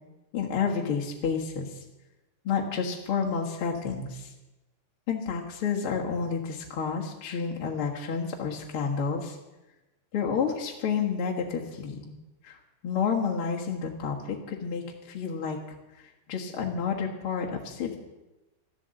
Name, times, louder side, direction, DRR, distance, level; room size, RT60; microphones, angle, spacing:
voice 1, 0.3-1.8 2.4-4.3 5.1-9.4 10.1-12.1 12.4-15.6 15.9-18.0, left 6 dB, 50° left, -2 dB, 2.3 m, -30 dB
14.0 x 12.0 x 7.7 m, 1.1 s
omnidirectional pair, 3.4 m